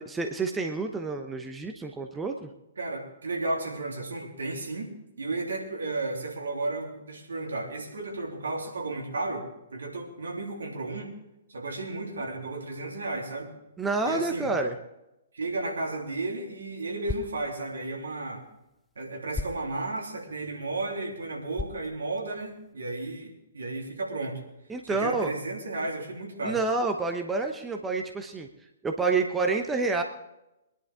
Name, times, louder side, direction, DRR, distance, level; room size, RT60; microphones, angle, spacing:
voice 1, 0.0-2.5 13.8-14.7 24.7-25.3 26.4-28.5 28.8-30.0, right 3 dB, 10° right, 4 dB, 0.9 m, -28 dB
voice 2, 2.8-11.1 11.5-13.5 14.0-14.5 15.3-18.4 18.9-24.5 24.8-26.6, right 2 dB, 65° right, 0 dB, 3.1 m, -33 dB
sound 1, 15.8-22.7, left 3 dB, 10° left, 0.5 m, -42 dB
22.0 x 11.0 x 3.7 m, 0.89 s
figure-of-eight pair, 120°, 0 cm